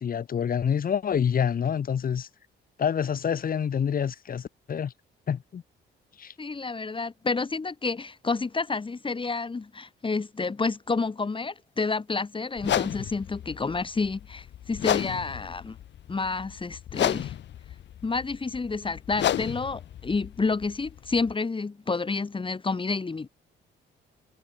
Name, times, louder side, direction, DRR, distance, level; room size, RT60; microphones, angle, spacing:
voice 1, 0.0-2.3 2.8-4.9 5.3-5.6 6.2-6.3, left 8 dB, 45° left, 1.3 m, -27 dB
voice 2, 6.4-15.8 16.1-17.3 18.0-23.3, left 4 dB, 25° left, 2.1 m, -29 dB
sound 1, 12.6-21.3, left 11 dB, 65° left, 1.1 m, -32 dB
cardioid pair, 90°, 20 cm